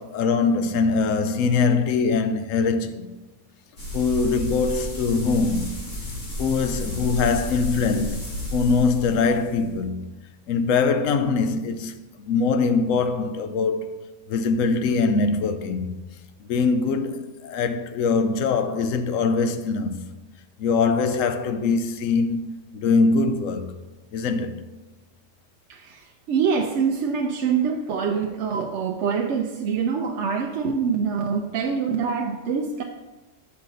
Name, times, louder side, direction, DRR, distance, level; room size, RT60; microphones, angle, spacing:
voice 1, 0.0-3.1 3.9-5.8 6.4-8.2 8.5-10.0 10.5-14.0 14.3-15.9 16.5-20.0 20.6-23.7 24.1-24.6, left 4 dB, 85° left, 1.0 m, -22 dB
sound 1, 3.8-9.8, left 1 dB, 70° left, 2.3 m, -32 dB
voice 2, 25.7-32.8, right 6 dB, 70° right, 0.8 m, -25 dB
7.9 x 5.7 x 3.9 m
omnidirectional pair, 1.3 m